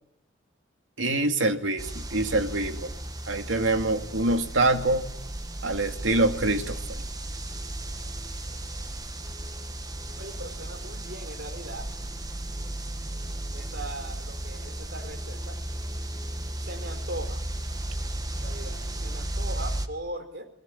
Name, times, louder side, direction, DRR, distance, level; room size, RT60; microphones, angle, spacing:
voice 1, 1.0-2.9 3.3-5.0 5.6-7.0, right 2 dB, 85° right, 6 dB, 2.5 m, -25 dB
sound 1, 1.8-19.9, right 1 dB, 20° right, 1.5 m, -35 dB
voice 2, 10.2-11.9 13.5-15.6 16.6-17.4 18.3-20.5, right 1 dB, 60° right, 9 dB, 4.3 m, -40 dB
28.0 x 21.5 x 9.8 m, 0.77 s
head